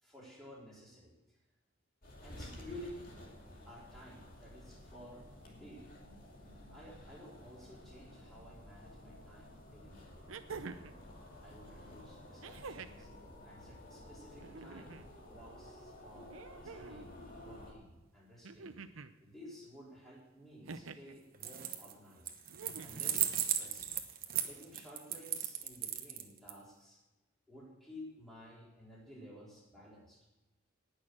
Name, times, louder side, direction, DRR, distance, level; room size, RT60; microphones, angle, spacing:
voice 1, 0.0-1.4 2.2-3.3 3.7-5.9 6.7-10.3 11.4-13.1 13.4-16.3 16.6-18.8 19.2-22.3 22.8-24.0 24.5-27.0 27.5-30.3, left 1 dB, ahead, -6 dB, 4.1 m, -54 dB
sound 1, 2.0-17.7, left 1 dB, 45° left, 2.6 m, -53 dB
sound 2, 9.2-9.3 10.3-11.0 12.4-13.1 14.3-15.1 16.3-17.1 18.4-19.1 20.6-21.2 22.5-23.1 24.4-24.5, right 4 dB, 75° right, 0.7 m, -47 dB
sound 3, 21.3-21.9 22.3-26.5, right 10 dB, 45° right, 1.1 m, -36 dB
18.5 x 6.6 x 6.4 m, 1.1 s
head